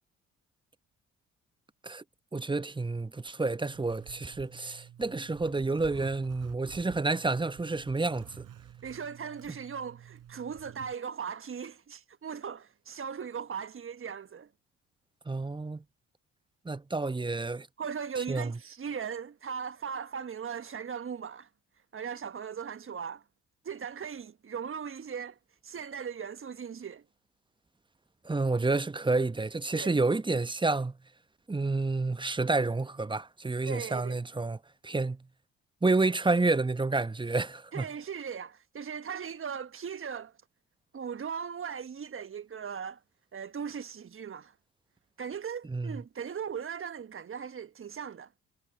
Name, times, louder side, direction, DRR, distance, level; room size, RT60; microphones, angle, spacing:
voice 1, 2.3-8.4 15.3-15.8 16.6-17.7 18.2-18.6 28.2-31.0 31.5-34.6 34.8-35.2 35.8-37.8 45.7-46.0, right 3 dB, 10° right, 1.1 m, -29 dB
Zipper (clothing), 3.7-10.9, right 10 dB, 50° right, 6.5 m, -50 dB
voice 2, 8.8-14.5 17.8-21.5 21.9-23.2 23.6-27.0 29.8-29.9 33.6-34.2 37.7-40.3 40.9-43.0 43.3-44.5 45.2-48.3, right 7 dB, 30° right, 1.4 m, -38 dB
figure-of-eight pair, 45°, 40 cm